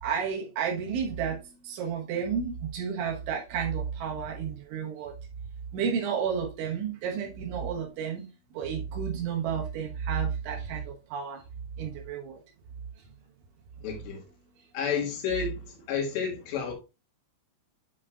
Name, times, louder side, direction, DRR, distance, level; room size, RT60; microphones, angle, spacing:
voice 1, 0.0-5.1 5.7-8.3 8.6-11.4 11.8-12.4, right 7 dB, 85° right, 3.7 m, -31 dB
voice 2, 13.8-14.2 14.7-16.7, left 6 dB, 75° left, 3.7 m, -31 dB
9.4 x 5.1 x 2.4 m
omnidirectional pair, 5.3 m